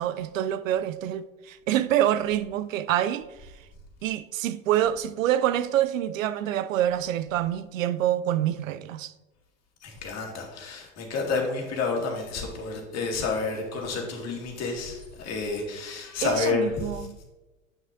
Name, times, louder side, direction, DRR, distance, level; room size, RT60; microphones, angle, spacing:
voice 1, 0.0-3.5 4.0-9.1 16.2-17.2, right 11 dB, 75° right, 0.5 m, -26 dB
voice 2, 9.8-16.9, left 4 dB, 40° left, 2.0 m, -30 dB
9.2 x 6.0 x 2.6 m
hypercardioid pair, 85°, 40 cm